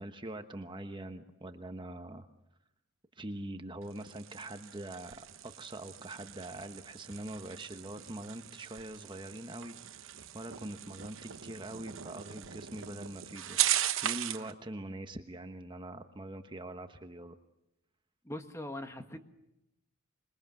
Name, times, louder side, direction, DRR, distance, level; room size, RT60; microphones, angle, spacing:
voice 1, 0.0-2.3 3.2-13.6 14.0-17.4, right 1 dB, 20° right, 8 dB, 1.1 m, -43 dB
sound 1, 3.8-14.5, right 12 dB, 60° right, 1.0 m, -38 dB
voice 2, 18.2-19.2, left 1 dB, 15° left, 7 dB, 1.5 m, -41 dB
25.5 x 22.0 x 7.7 m, 0.91 s
head